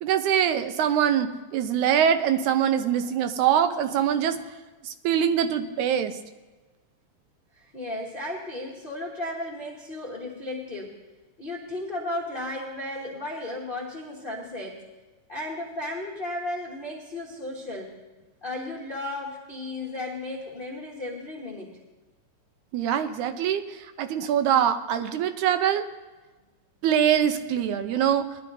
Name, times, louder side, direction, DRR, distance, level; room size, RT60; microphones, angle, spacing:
voice 1, 0.0-4.4 4.8-6.2 22.7-25.8 26.8-28.3, right 9 dB, 85° right, 9 dB, 2.2 m, -23 dB
voice 2, 7.5-11.0 11.4-14.8 15.3-18.0 18.4-21.7, left 1 dB, 40° left, -3 dB, 0.8 m, -34 dB
20.0 x 11.5 x 2.7 m, 1.2 s
omnidirectional pair, 3.4 m